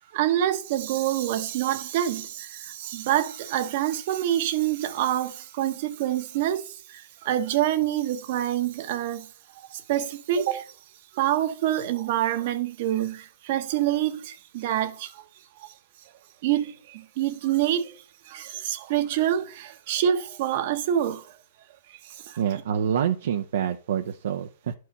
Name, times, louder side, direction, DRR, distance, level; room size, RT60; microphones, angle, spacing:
voice 1, 0.1-9.3 9.7-10.7 11.1-15.2 16.4-18.0 18.3-21.2 22.0-22.4, right 11 dB, 45° right, 0.9 m, -26 dB
voice 2, 22.4-24.7, right 8 dB, 65° right, 0.6 m, -27 dB
11.0 x 4.6 x 4.1 m
hypercardioid pair, 150°, 0 cm